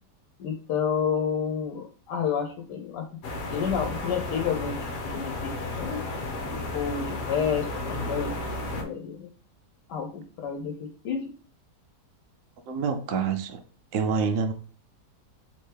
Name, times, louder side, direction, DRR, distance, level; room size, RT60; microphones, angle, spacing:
voice 1, 0.4-3.0 3.5-4.8 5.0-5.5 5.8-6.0 6.7-8.3 8.8-9.3 9.9-11.3, left 7 dB, 85° left, 4 dB, 1.3 m, -30 dB
sound 1, 3.2-8.8, left 2 dB, 60° left, 1.1 m, -33 dB
voice 2, 12.7-13.6 13.9-14.5, right 5 dB, 65° right, 6 dB, 0.8 m, -27 dB
4.5 x 3.0 x 3.3 m, 0.40 s
omnidirectional pair, 1.8 m